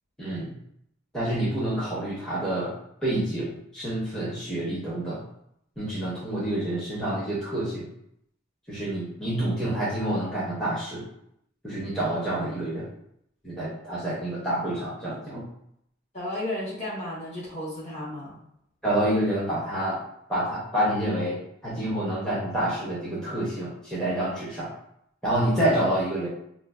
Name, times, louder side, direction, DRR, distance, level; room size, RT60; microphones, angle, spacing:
voice 1, 0.2-0.6 1.1-2.7 3.0-5.2 5.8-7.9 8.7-11.0 11.6-12.9 13.4-15.4 18.8-20.0 20.3-24.7 25.2-26.3, right 1 dB, 5° left, -8 dB, 0.6 m, -28 dB
voice 2, 16.1-18.4, left 1 dB, 30° left, -7 dB, 1.0 m, -33 dB
4.9 x 2.0 x 2.3 m, 0.75 s
head